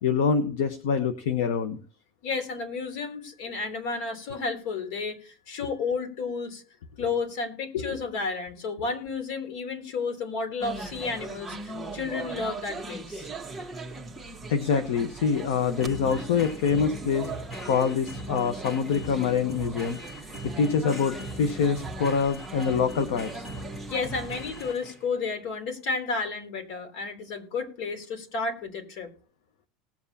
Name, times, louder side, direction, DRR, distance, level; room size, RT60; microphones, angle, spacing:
voice 1, 0.0-1.8 7.8-8.0 14.5-17.3 17.6-20.0 20.4-23.5, left 6 dB, 80° left, 9 dB, 1.1 m, -25 dB
voice 2, 2.2-6.6 7.0-13.3 23.9-29.1, left 4 dB, 65° left, 5 dB, 3.3 m, -32 dB
sound 1, 10.6-24.7, right 3 dB, 5° right, 1.2 m, -40 dB
sound 2, 13.6-25.2, right 1 dB, 30° left, 2.1 m, -40 dB
19.5 x 7.2 x 2.9 m, 0.39 s
supercardioid pair, 140°, 0 cm